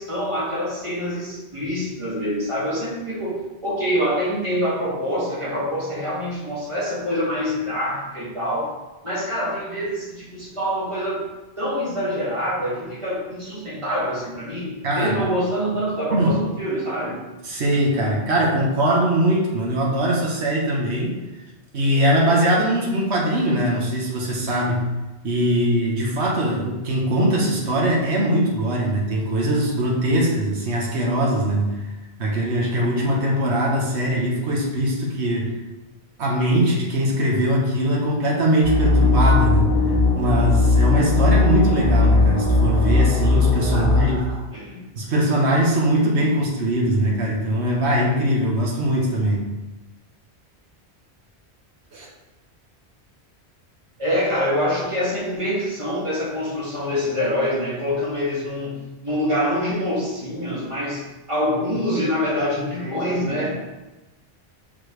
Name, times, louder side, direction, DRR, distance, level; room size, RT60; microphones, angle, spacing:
voice 1, 0.0-8.7 9.0-11.2 11.6-17.2 43.7-44.8 54.0-63.5, equal, 30° right, -7 dB, 2.2 m, -25 dB
voice 2, 14.8-15.2 16.1-16.3 17.4-21.2 21.7-24.9 25.2-31.8 32.2-35.5 36.2-39.7 40.1-44.3 45.0-49.4 51.9-52.1, right 1 dB, 80° right, -3 dB, 1.4 m, -21 dB
sound 1, 38.6-44.0, left 3 dB, 35° left, 1.5 m, -18 dB
6.3 x 5.8 x 3.3 m, 1.1 s
omnidirectional pair, 1.1 m